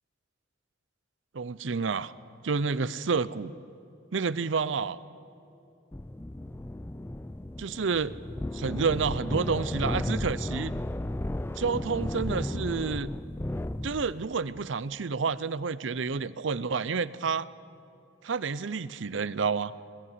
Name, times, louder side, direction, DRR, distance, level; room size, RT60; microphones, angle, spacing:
voice 1, 1.3-2.1 2.4-3.5 4.1-5.0 7.6-8.1 8.5-10.7 11.6-13.1 13.8-17.5 18.2-19.7, right 5 dB, 75° right, 17 dB, 0.6 m, -29 dB
sound 1, 5.9-14.3, left 1 dB, 10° left, 0.4 m, -34 dB
21.5 x 12.5 x 9.8 m, 2.9 s
head